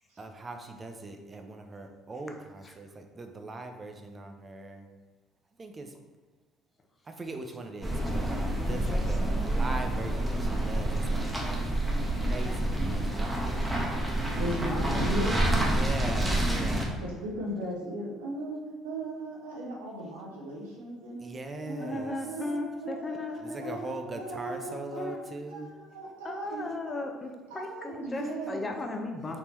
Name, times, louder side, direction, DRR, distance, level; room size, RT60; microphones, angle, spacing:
voice 1, 0.2-4.9 5.6-5.9 7.0-11.3 12.2-14.1 15.7-17.0 21.2-22.1 23.4-25.7, right 2 dB, 30° right, 6 dB, 0.5 m, -40 dB
sound 1, 7.8-16.8, right 1 dB, 15° right, 0.8 m, -28 dB
voice 2, 8.3-9.5 12.4-12.6 14.7-15.2 21.8-23.8 25.0-25.2 26.2-29.4, left 2 dB, 30° left, 3 dB, 0.5 m, -37 dB
voice 3, 14.3-15.9 17.0-21.3 21.6-23.9 24.2-25.2 25.5-27.1 27.5-28.8, right 1 dB, 90° right, -4 dB, 0.8 m, -37 dB
3.6 x 2.8 x 3.1 m, 1.3 s
hypercardioid pair, 65°, 0 cm